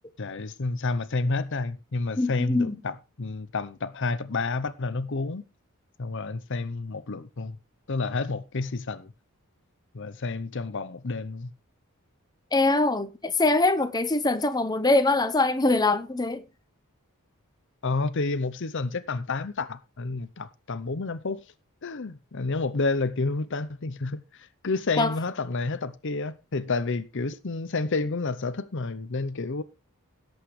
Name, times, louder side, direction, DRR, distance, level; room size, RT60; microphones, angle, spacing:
voice 1, 0.2-5.4 6.0-7.6 7.9-9.1 9.9-11.5 17.8-21.5 21.8-29.6, left 3 dB, 55° left, 0.7 m, -30 dB
voice 2, 2.2-2.8 12.5-16.5 25.0-25.1, left 2 dB, 20° left, 1.0 m, -23 dB
17.5 x 8.1 x 3.2 m
head